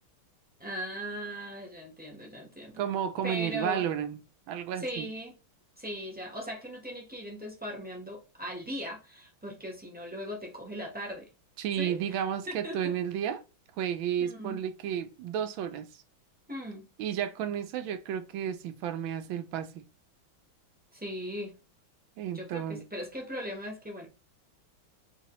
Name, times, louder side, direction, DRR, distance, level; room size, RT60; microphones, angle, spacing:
voice 1, 0.6-2.8 3.2-3.8 4.8-5.3 5.8-11.3 11.8-12.2 12.5-12.9 14.2-14.6 16.5-16.9 20.9-21.5 22.3-24.1, equal, 10° right, 0.6 m, -39 dB
voice 2, 2.8-4.2 4.5-5.1 11.6-13.4 13.8-15.9 17.0-19.8 22.2-22.8, right 9 dB, 80° right, 1.4 m, -32 dB
5.6 x 2.8 x 3.0 m
omnidirectional pair, 2.2 m